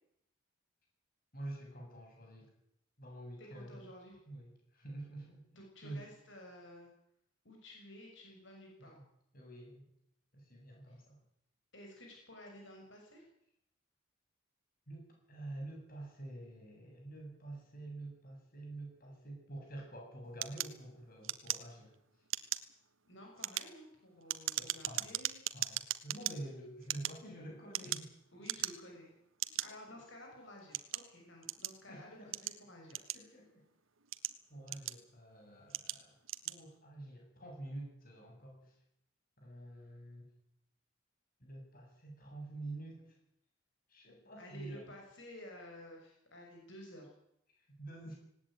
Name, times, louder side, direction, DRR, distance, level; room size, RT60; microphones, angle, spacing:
voice 1, 1.3-2.5 3.0-3.8 4.3-6.0 8.8-9.0 9.3-9.9 10.3-11.2 14.9-22.0 24.6-25.1 25.5-28.4 29.5-30.1 31.9-32.5 33.1-33.6 34.5-36.2 36.4-38.7 39.4-40.3 41.4-43.1 43.9-44.8 47.6-48.2, right 1 dB, 45° left, 1 dB, 8.0 m, -48 dB
voice 2, 3.4-4.2 5.6-6.9 7.5-8.9 10.9-11.0 11.7-13.2 23.1-25.4 28.3-29.1 29.6-33.0 44.4-47.1, equal, 65° left, 0 dB, 6.8 m, -53 dB
sound 1, 20.4-21.9 22.3-22.7 23.3-26.3 26.8-28.1 28.4-29.0 29.4-29.7 30.3-31.8 32.3-33.5 34.0-35.2 35.7-36.0 36.2-36.6, right 13 dB, 85° right, 1.4 m, -38 dB
18.5 x 18.5 x 9.4 m, 0.75 s
head